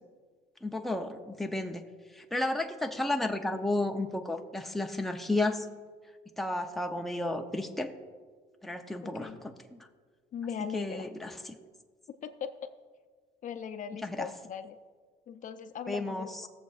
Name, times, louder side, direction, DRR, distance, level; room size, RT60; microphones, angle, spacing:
voice 1, 0.6-1.8 2.2-5.7 6.4-7.9 8.6-9.5 10.7-11.5 14.0-14.3 15.9-16.3, left 2 dB, ahead, 3 dB, 0.7 m, -32 dB
voice 2, 9.0-9.4 10.3-11.1 12.1-12.5 13.4-14.8 15.3-16.5, left 7 dB, 50° left, 9 dB, 0.6 m, -39 dB
19.0 x 7.3 x 2.5 m, 1.5 s
cardioid pair, 110°, 17 cm